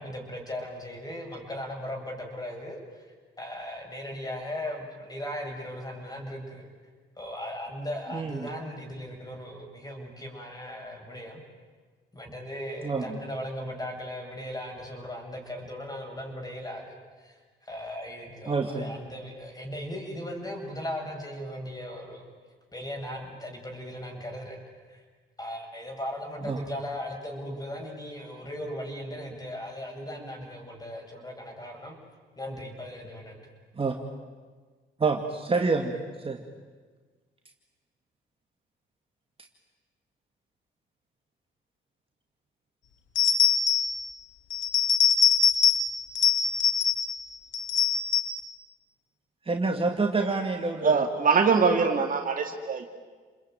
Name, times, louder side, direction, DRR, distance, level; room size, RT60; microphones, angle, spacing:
voice 1, 0.0-3.1 3.4-6.7 7.2-11.4 12.1-22.2 22.7-24.6 24.9-25.0 25.4-32.0 32.4-33.5, left 1 dB, 20° left, 2 dB, 7.3 m, -38 dB
voice 2, 8.1-8.5 12.8-13.2 18.5-19.0 26.5-26.6 33.8-33.9 35.0-36.4 49.5-51.0, right 4 dB, 30° right, 2 dB, 2.2 m, -28 dB
sound 1, 43.2-44.0 44.5-45.9 46.2-47.2 47.5-48.4, left 7 dB, 75° left, 2.5 m, -23 dB
voice 3, 50.8-52.9, right 5 dB, 45° right, 4 dB, 2.3 m, -23 dB
29.5 x 21.5 x 9.3 m, 1.4 s
cardioid pair, 90°, 20 cm